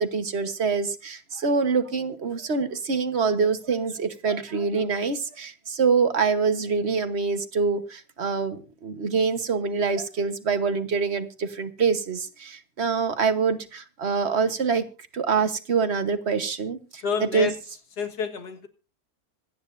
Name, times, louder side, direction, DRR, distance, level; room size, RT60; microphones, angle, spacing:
voice 1, 0.0-14.8 15.1-17.5, right 5 dB, 45° right, 10 dB, 1.4 m, -25 dB
voice 2, 17.0-17.5 18.0-18.7, left 6 dB, 80° left, 6 dB, 2.2 m, -29 dB
26.0 x 9.7 x 2.6 m, 0.34 s
omnidirectional pair, 1.7 m